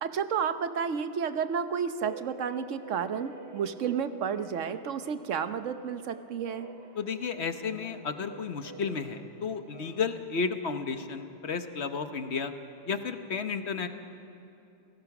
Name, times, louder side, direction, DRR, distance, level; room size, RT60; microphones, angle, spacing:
voice 1, 0.0-6.7, right 7 dB, 80° right, 11 dB, 1.2 m, -31 dB
sound 1, 2.0-10.2, right 3 dB, 60° right, 5.2 m, -48 dB
voice 2, 7.0-12.5 12.9-13.9, left 5 dB, 60° left, 8 dB, 1.3 m, -32 dB
29.5 x 17.5 x 6.0 m, 2.7 s
omnidirectional pair, 1.3 m